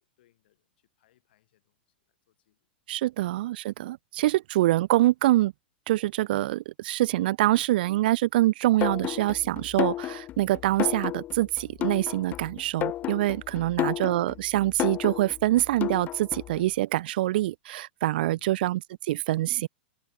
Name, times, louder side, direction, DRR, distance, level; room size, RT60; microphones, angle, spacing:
voice 1, 0.0-1.8 2.1-2.7 2.9-3.1 13.4-13.9 18.2-18.6, left 14 dB, 65° left, 7.7 m, -62 dB
voice 2, 2.9-5.5 5.9-18.8 19.1-19.7, right 16 dB, 65° right, 0.3 m, -25 dB
sound 1, 8.8-16.6, left 13 dB, 30° left, 0.4 m, -32 dB
hypercardioid pair, 115°, 6 cm